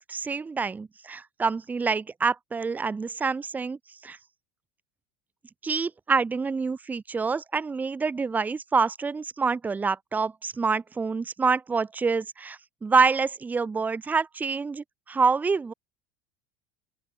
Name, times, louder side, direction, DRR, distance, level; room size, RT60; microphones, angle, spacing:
voice 1, 0.1-3.8 4.0-4.2 5.6-15.7, right 4 dB, 15° right, 1.1 m, -26 dB
open air
supercardioid pair, 125°, 11 cm